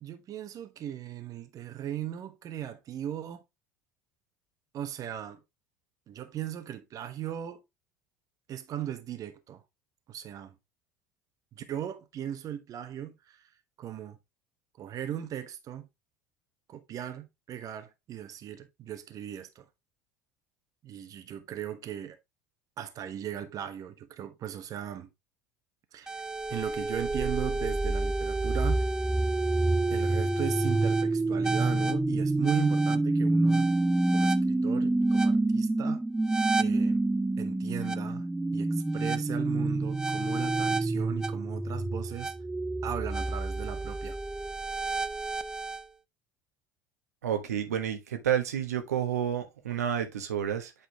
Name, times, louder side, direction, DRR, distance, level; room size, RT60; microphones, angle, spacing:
voice 1, 0.0-3.4 4.7-5.4 6.1-7.6 8.5-9.6 10.1-10.5 11.5-13.5 13.8-14.2 14.8-15.8 16.7-19.6 20.8-22.2 22.8-25.1 25.9-26.2 26.5-28.9 29.9-33.7 34.1-36.0 36.6-37.0 37.4-38.3 38.5-42.3 42.8-44.2, right 10 dB, 45° right, 1.2 m, -38 dB
sound 1, 26.1-45.8, right 2 dB, 10° right, 0.5 m, -28 dB
voice 2, 47.2-50.7, right 9 dB, 80° right, 1.2 m, -30 dB
8.3 x 4.3 x 3.3 m
hypercardioid pair, 70°, 8 cm